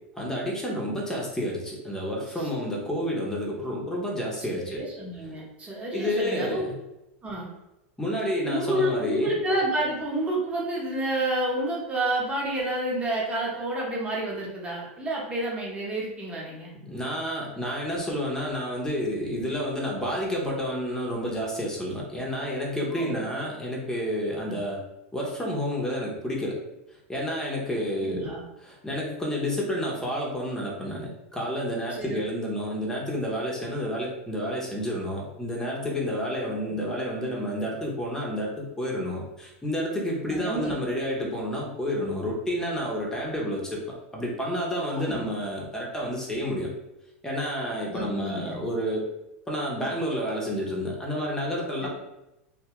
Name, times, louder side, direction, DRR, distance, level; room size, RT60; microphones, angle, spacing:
voice 1, 0.2-4.8 5.9-6.7 8.0-9.3 16.8-24.8 25.1-26.6 27.1-28.3 28.6-46.7 47.2-49.0 49.5-51.9, equal, 5° left, -3 dB, 0.8 m, -30 dB
voice 2, 4.5-6.7 7.2-7.5 8.4-16.7 22.9-23.2 24.5-24.6 28.0-28.4 32.0-32.2 36.5-36.8 40.3-40.8 44.8-45.2 47.9-48.6 51.8-51.9, right 1 dB, 15° right, -4 dB, 1.0 m, -29 dB
2.7 x 2.3 x 3.0 m, 0.92 s
hypercardioid pair, 120°, 7 cm